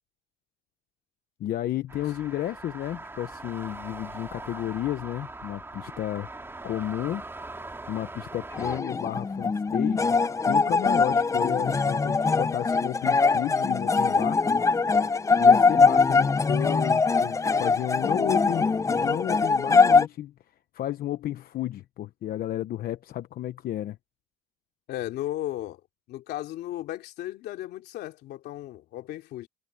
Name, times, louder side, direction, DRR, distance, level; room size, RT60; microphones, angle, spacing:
voice 1, 1.4-6.3 6.6-7.2 7.9-10.1 10.4-14.4 15.4-20.3 20.7-24.0, left 12 dB, 60° left, 0.9 m, -32 dB
sound 1, 1.9-8.8, right 2 dB, 15° right, 2.7 m, -41 dB
sound 2, 8.5-20.1, left 4 dB, 20° left, 0.6 m, -22 dB
voice 2, 24.9-25.8 26.1-29.5, left 14 dB, 80° left, 2.9 m, -35 dB
cardioid pair, 125°, 17 cm